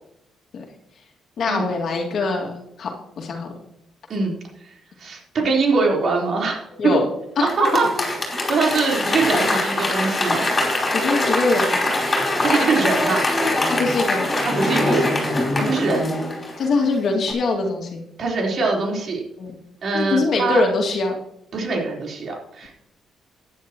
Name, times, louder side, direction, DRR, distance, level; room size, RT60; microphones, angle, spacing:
voice 1, 1.4-2.5 2.8-3.5 6.8-7.1 7.4-7.5 7.7-7.8 10.9-11.8 13.7-14.3 15.6-15.7 16.6-18.0 19.4-19.6 19.9-21.1, left 3 dB, 60° left, 1 dB, 2.3 m, -22 dB
voice 2, 4.6-6.9 7.4-7.9 8.3-10.5 12.2-13.2 14.4-15.2 15.6-16.1 18.2-19.2 19.8-20.6 21.5-22.7, right 4 dB, 55° right, -1 dB, 4.1 m, -23 dB
Applause / Crowd, 7.5-16.9 17.3-17.4, left 1 dB, 25° left, 5.1 m, -22 dB
15.0 x 10.5 x 3.1 m, 0.80 s
cardioid pair, 90°, 0 cm